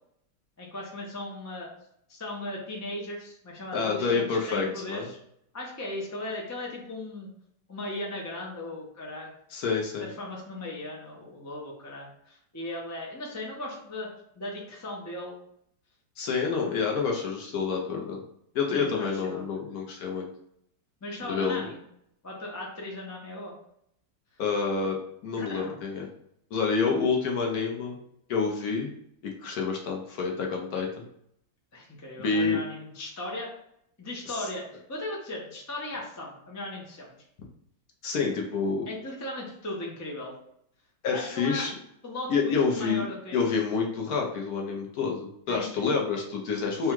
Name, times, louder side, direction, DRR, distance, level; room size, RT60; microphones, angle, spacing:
voice 1, 0.6-1.7 2.1-5.2 5.5-7.3 7.7-9.3 10.0-14.1 14.4-15.4 18.7-19.6 21.0-21.8 22.2-23.5 25.4-25.7 31.7-33.5 34.0-37.1 38.9-40.3 41.1-41.7 42.0-43.5 45.5-45.9, left 1 dB, 20° left, -3 dB, 0.4 m, -37 dB
voice 2, 3.7-5.1 9.5-10.1 16.2-18.2 18.5-20.3 21.3-21.7 24.4-25.0 25.2-26.1 26.5-28.0 28.3-28.9 29.2-31.0 32.2-32.6 34.3-34.4 38.0-38.9 41.0-41.7 42.3-43.0 43.3-46.9, left 5 dB, 65° left, 0 dB, 1.2 m, -28 dB
3.5 x 2.3 x 4.5 m, 0.72 s
omnidirectional pair, 1.9 m